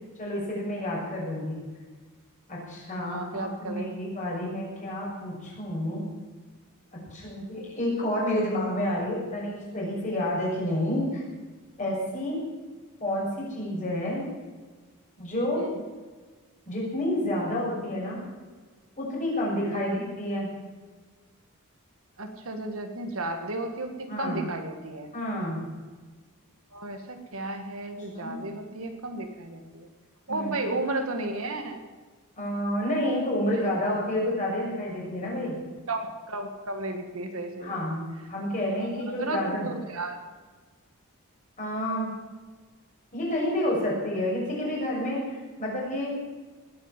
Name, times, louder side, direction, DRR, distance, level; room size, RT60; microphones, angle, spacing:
voice 1, 0.2-1.6 2.5-6.1 6.9-11.2 11.8-12.4 13.0-14.3 15.2-15.6 16.7-18.2 19.0-20.5 24.1-24.4 25.1-25.7 28.1-28.4 30.3-30.6 32.4-35.5 37.6-39.7 41.6-42.1 43.1-46.2, left 1 dB, 35° left, -4 dB, 6.6 m, -29 dB
voice 2, 2.9-3.9 15.6-15.7 19.7-20.0 22.2-25.1 26.7-29.9 30.3-31.8 33.5-33.6 35.9-37.9 38.9-40.2, right 2 dB, 65° right, 5 dB, 2.0 m, -34 dB
19.5 x 8.9 x 7.4 m, 1.4 s
head